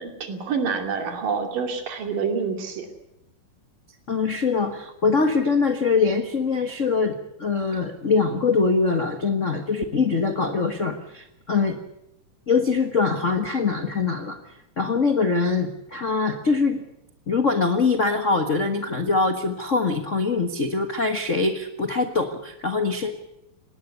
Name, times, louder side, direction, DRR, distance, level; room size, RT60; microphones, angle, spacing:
voice 1, 0.0-2.9, right 5 dB, 75° right, 5 dB, 4.3 m, -27 dB
voice 2, 4.1-11.8 12.5-14.4 14.8-16.8 17.3-23.1, left 4 dB, 75° left, 7 dB, 0.6 m, -23 dB
19.0 x 19.0 x 8.3 m, 0.85 s
omnidirectional pair, 3.9 m